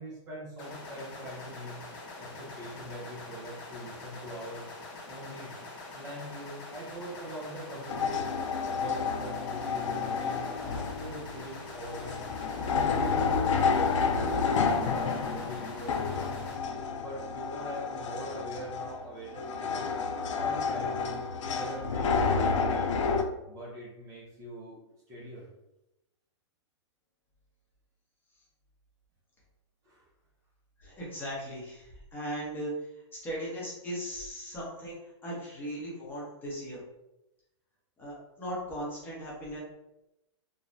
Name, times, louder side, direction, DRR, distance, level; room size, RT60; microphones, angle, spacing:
voice 1, 0.0-1.8 2.2-4.7 5.1-5.6 5.9-8.3 8.7-12.3 12.7-16.5 16.9-19.9 20.4-23.1 23.5-24.8 25.1-25.5 29.8-30.1, equal, 20° right, -5 dB, 0.6 m, -43 dB
sound 1, 0.6-16.5, left 2 dB, 45° left, 0.9 m, -45 dB
sound 2, 7.9-23.2, left 5 dB, 85° left, 0.4 m, -30 dB
voice 2, 30.8-32.7 33.1-36.8 38.0-39.6, equal, 15° left, -5 dB, 0.8 m, -38 dB
3.1 x 2.2 x 2.6 m, 0.90 s
hypercardioid pair, 150°, 15 cm